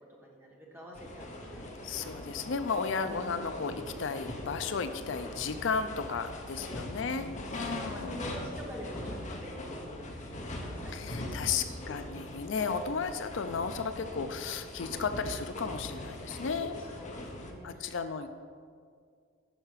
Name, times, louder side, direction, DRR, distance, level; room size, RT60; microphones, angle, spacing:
voice 1, 0.2-2.1 3.0-3.5 6.5-11.0 11.3-12.1 16.8-18.0, equal, 10° right, -2 dB, 1.4 m, -47 dB
sound 1, 1.0-17.5, left 1 dB, 35° left, 1.0 m, -41 dB
voice 2, 1.8-8.2 10.9-16.8 17.6-18.3, left 5 dB, 65° left, 9 dB, 0.4 m, -34 dB
10.5 x 4.7 x 6.6 m, 2.1 s
head